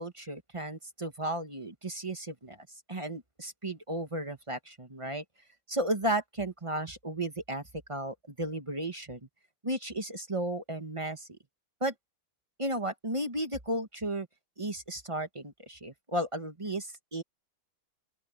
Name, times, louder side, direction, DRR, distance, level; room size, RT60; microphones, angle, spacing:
voice 1, 0.0-2.6 2.9-5.2 5.7-7.6 7.9-9.2 9.6-11.4 11.8-11.9 12.6-14.3 14.6-17.2, right 1 dB, 20° right, 1.2 m, -34 dB
open air
omnidirectional pair, 2.2 m